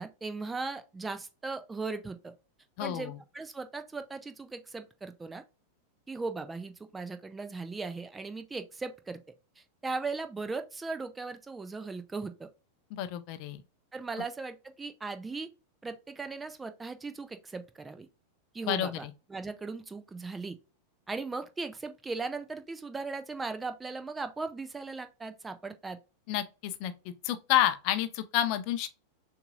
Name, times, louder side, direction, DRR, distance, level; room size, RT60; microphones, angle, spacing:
voice 1, 0.0-2.3 2.8-5.4 6.1-9.2 9.6-12.5 13.9-15.5 15.8-18.1 18.5-20.6 21.1-26.0, right 3 dB, 10° right, 0.5 m, -38 dB
voice 2, 2.8-3.2 12.9-13.6 18.7-19.1 26.3-28.9, left 12 dB, 45° left, 0.5 m, -30 dB
6.6 x 2.7 x 2.5 m
figure-of-eight pair, 90°, 0 cm